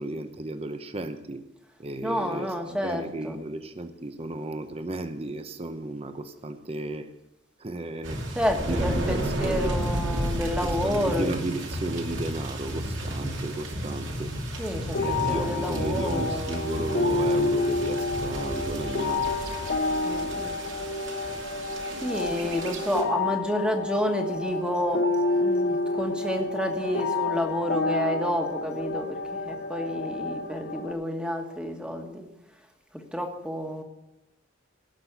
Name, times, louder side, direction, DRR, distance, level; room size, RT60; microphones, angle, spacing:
voice 1, 0.0-1.4 1.8-7.1 7.6-8.2 8.6-9.7 10.6-14.3 14.9-19.3 22.4-22.5, right 2 dB, 30° right, 9 dB, 0.8 m, -34 dB
voice 2, 2.0-3.4 8.3-11.3 14.6-16.7 20.0-20.6 22.0-32.2 32.9-33.8, equal, 5° right, 4 dB, 1.5 m, -30 dB
sound 1, 8.0-23.0, right 1 dB, 65° right, 2.7 m, -33 dB
sound 2, 14.9-30.9, left 2 dB, 55° left, 1.1 m, -29 dB
18.0 x 6.1 x 8.1 m, 0.91 s
head